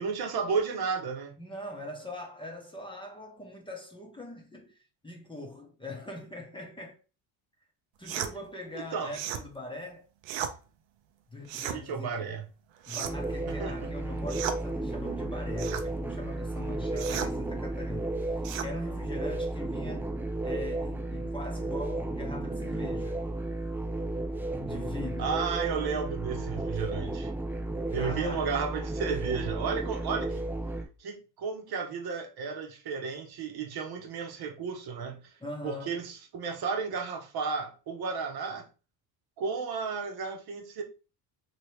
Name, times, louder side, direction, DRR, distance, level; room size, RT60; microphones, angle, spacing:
voice 1, 0.0-1.3 8.9-9.1 11.9-12.4 13.5-13.9 25.2-27.3 27.9-30.4 31.0-35.3 35.6-38.6 39.4-40.8, right 5 dB, 55° right, 1.0 m, -33 dB
voice 2, 1.4-7.0 8.0-10.1 11.3-12.3 12.9-18.3 18.6-20.1 20.4-23.2 24.6-25.4 28.0-28.6 35.4-36.0, left 2 dB, 10° left, 0.8 m, -42 dB
sound 1, 8.1-8.3 9.1-9.5 10.2-10.6 11.5-11.8 12.8-13.3 14.3-14.6 15.6-15.9 17.0-17.3 18.4-18.7, right 9 dB, 75° right, 0.7 m, -34 dB
sound 2, 13.0-30.8, right 2 dB, 5° right, 0.3 m, -33 dB
3.0 x 2.9 x 3.1 m
cardioid pair, 95°, 46 cm